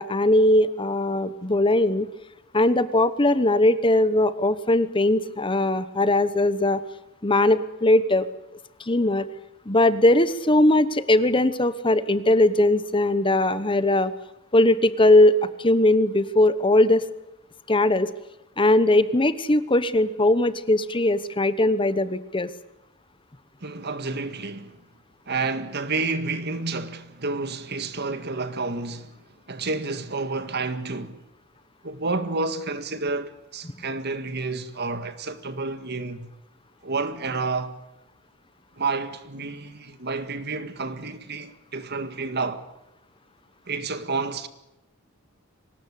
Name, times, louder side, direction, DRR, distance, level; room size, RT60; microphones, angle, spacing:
voice 1, 0.0-2.1 2.5-6.8 7.2-8.3 8.8-9.3 9.7-14.1 14.5-17.0 17.7-18.1 18.6-22.5, left 1 dB, 25° left, 1.0 m, -20 dB
voice 2, 23.6-24.8 25.3-31.2 31.8-36.3 36.8-37.7 38.8-42.6 43.7-44.5, right 3 dB, 50° right, 1.8 m, -30 dB
24.5 x 19.5 x 8.5 m
head